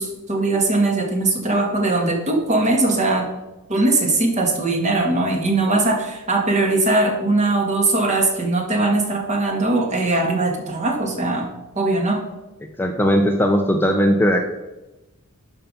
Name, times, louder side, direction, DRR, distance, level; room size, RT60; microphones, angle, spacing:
voice 1, 0.0-3.3 3.7-11.5 11.7-12.2, right 2 dB, 30° right, 2 dB, 1.8 m, -20 dB
voice 2, 12.8-14.4, equal, 10° left, 3 dB, 0.7 m, -18 dB
11.5 x 5.6 x 5.3 m, 1.0 s
head